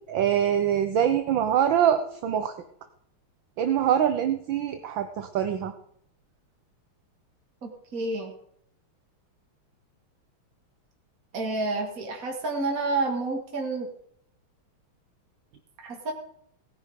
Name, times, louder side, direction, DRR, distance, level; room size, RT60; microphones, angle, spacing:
voice 1, 0.1-2.5 3.6-5.7, right 9 dB, 65° right, 8 dB, 1.6 m, -24 dB
voice 2, 7.6-8.3 11.3-13.9 15.8-16.1, right 3 dB, 40° right, 1 dB, 2.5 m, -29 dB
17.5 x 10.5 x 5.1 m, 0.69 s
omnidirectional pair, 2.4 m